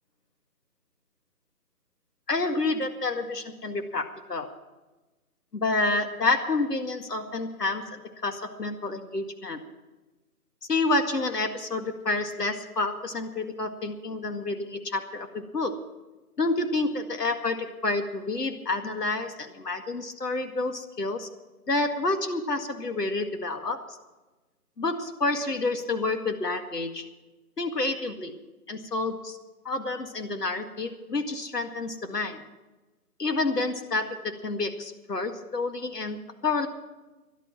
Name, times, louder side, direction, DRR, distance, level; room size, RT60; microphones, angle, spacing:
voice 1, 2.3-4.5 5.5-9.6 10.7-15.8 16.4-21.3 21.7-24.0 24.8-27.1 27.6-28.3 28.7-29.4 29.6-32.4 33.2-36.7, left 3 dB, 90° left, 6 dB, 2.1 m, -29 dB
17.0 x 11.5 x 5.8 m, 1.1 s
figure-of-eight pair, 165°, 46 cm